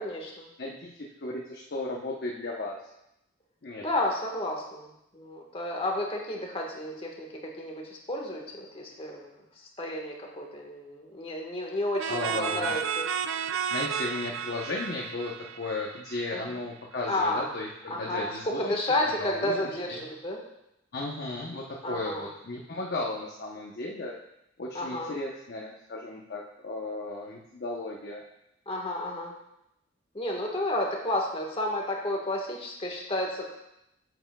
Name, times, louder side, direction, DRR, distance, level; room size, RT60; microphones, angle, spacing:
voice 1, 0.0-0.5 3.8-4.9 5.1-7.3 7.6-7.8 8.1-9.3 9.8-13.1 16.3-16.6 17.1-17.5 17.9-18.3 18.6-20.4 21.8-22.2 24.7-25.1 28.7-29.3 30.1-33.5, left 1 dB, 30° left, 0 dB, 1.4 m, -31 dB
voice 2, 0.6-2.8 3.6-3.8 11.7-11.8 12.1-12.7 13.7-18.8 19.1-20.1 20.9-24.1 24.6-28.2, left 2 dB, 55° left, -2 dB, 0.9 m, -35 dB
sound 1, 12.0-16.6, right 7 dB, 85° right, 0.4 m, -32 dB
9.3 x 8.0 x 2.3 m, 0.83 s
head